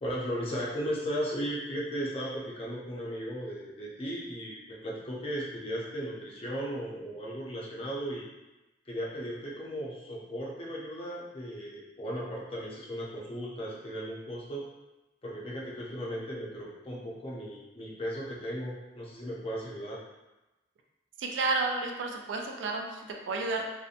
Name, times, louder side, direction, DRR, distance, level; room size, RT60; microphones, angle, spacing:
voice 1, 0.0-8.2 8.9-14.6 15.2-20.0, equal, 30° left, -5 dB, 0.5 m, -36 dB
voice 2, 21.2-23.7, right 3 dB, 65° right, 2 dB, 0.3 m, -31 dB
2.7 x 2.1 x 2.4 m, 1.0 s
head